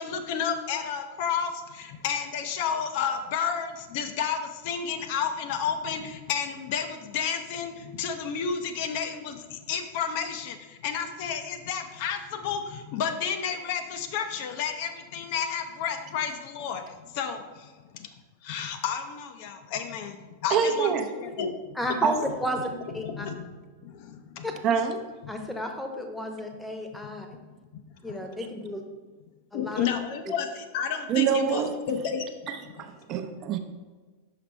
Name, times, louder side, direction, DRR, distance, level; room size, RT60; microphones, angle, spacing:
voice 1, 0.0-18.1 18.4-21.5 22.2-22.6 23.0-23.5 23.8-24.5 25.2-25.3 27.0-27.1 27.7-27.8 28.1-28.2 29.5-32.3, left 7 dB, 50° left, 7 dB, 0.6 m, -31 dB
voice 2, 20.5-21.1 22.0-22.1 24.6-25.0 31.1-31.7 32.5-33.6, right 7 dB, 35° right, 6 dB, 0.6 m, -25 dB
voice 3, 21.8-22.1 22.4-22.6 22.9-23.3 24.4-24.5 25.3-27.4 28.0-28.8 29.5-29.9, equal, 5° left, 4 dB, 0.9 m, -32 dB
5.8 x 5.8 x 3.2 m, 1.3 s
figure-of-eight pair, 90°, 0 cm